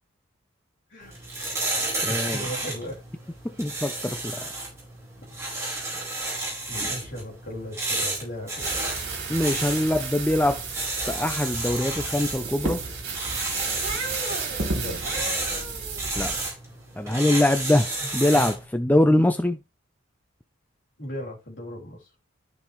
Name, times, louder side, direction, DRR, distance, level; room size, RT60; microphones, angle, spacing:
voice 1, 0.9-1.3 2.1-3.0 5.9-6.4 6.7-8.7 14.7-15.0 21.0-22.1, equal, 55° left, 3.2 m, -37 dB
sound 1, 1.0-18.6, right 2 dB, 15° right, 4.6 m, -32 dB
voice 2, 2.0-2.5 3.4-4.6 9.3-12.9 16.1-16.4 17.0-19.6, left 1 dB, 10° left, 0.4 m, -23 dB
sound 2, 8.6-16.5, right 4 dB, 50° right, 2.8 m, -32 dB
13.0 x 5.3 x 3.1 m
head